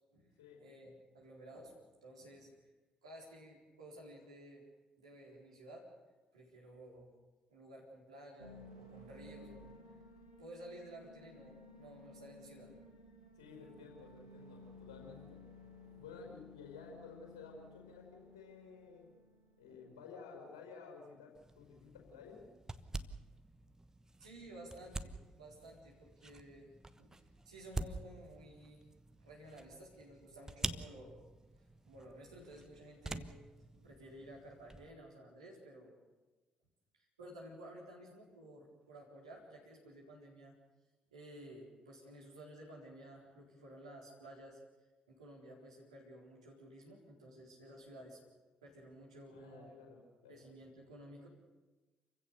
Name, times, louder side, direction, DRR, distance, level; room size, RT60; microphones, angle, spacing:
voice 1, 0.1-2.5 3.0-4.7 5.0-5.9 6.3-7.1 7.5-10.0 10.4-12.8 15.8-15.9 19.7-19.8 22.9-23.0 24.2-26.7 27.0-28.8 29.2-31.2 31.6-33.3 33.7-35.9 36.9-40.5 41.1-44.6 45.1-48.2 48.6-49.7 50.3-51.3, right 1 dB, 80° right, -3 dB, 4.3 m, -54 dB
sound 1, 8.4-19.9, left 2 dB, 90° left, 2.1 m, -57 dB
voice 2, 13.4-15.4 16.0-19.1 19.6-22.5 49.3-50.4, left 5 dB, 70° left, 1 dB, 5.4 m, -53 dB
sound 2, 21.3-34.9, right 2 dB, 15° right, 1.2 m, -47 dB
29.0 x 16.0 x 6.9 m, 1.2 s
figure-of-eight pair, 45°, 3 cm